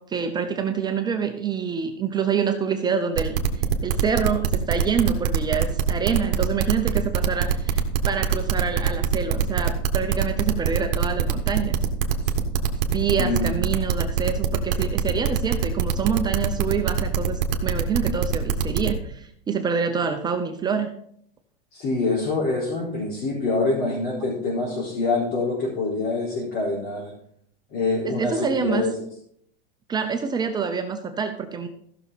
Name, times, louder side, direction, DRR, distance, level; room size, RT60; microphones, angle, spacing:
voice 1, 0.0-11.8 12.9-20.9 28.0-28.9 29.9-31.7, right 6 dB, 15° right, 6 dB, 0.6 m, -26 dB
sound 1, 3.2-18.9, right 9 dB, 60° right, 1.6 m, -22 dB
voice 2, 13.2-13.5 21.7-27.1 27.7-28.9, left 3 dB, 35° left, -6 dB, 4.2 m, -25 dB
15.0 x 6.4 x 4.1 m, 0.67 s
supercardioid pair, 145°, 29 cm